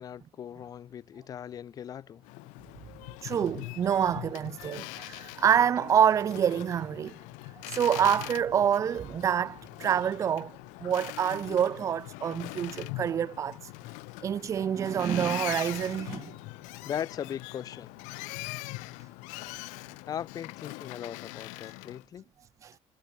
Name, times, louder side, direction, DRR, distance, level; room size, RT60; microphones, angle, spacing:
voice 1, 0.0-2.3 16.8-17.9 20.1-22.3, left 9 dB, 30° left, 1.6 m, -38 dB
Boat Water vehicle, 2.2-22.0, left 28 dB, 90° left, 1.1 m, -42 dB
sound 1, 2.8-19.0, left 1 dB, 5° left, 7.9 m, -66 dB
voice 2, 3.2-7.1 7.5-10.5 10.8-13.7 14.2-16.3 22.6-22.8, right 8 dB, 25° right, 0.5 m, -27 dB
cardioid pair, 180°, 12 cm